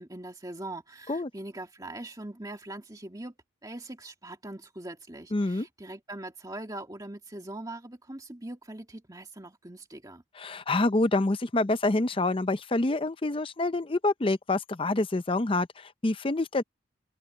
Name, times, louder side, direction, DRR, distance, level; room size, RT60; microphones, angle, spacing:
voice 1, 0.0-3.3 3.6-10.2, right 1 dB, 20° right, 2.2 m, -41 dB
voice 2, 5.3-5.7 10.4-16.6, left 2 dB, 25° left, 0.6 m, -27 dB
open air
head